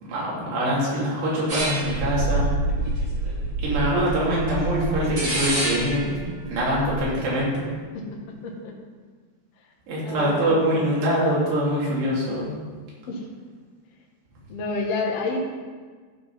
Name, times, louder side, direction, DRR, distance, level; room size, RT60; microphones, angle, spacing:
voice 1, 0.0-2.5 3.6-7.7 9.9-12.5, equal, 70° right, -6 dB, 5.1 m, -24 dB
sound 1, 1.5-7.0, right 2 dB, 35° right, 3.6 m, -27 dB
voice 2, 10.0-10.8 13.1-13.3 14.5-15.4, left 3 dB, 55° left, -1 dB, 1.7 m, -29 dB
14.5 x 5.4 x 5.6 m, 1.5 s
omnidirectional pair, 5.0 m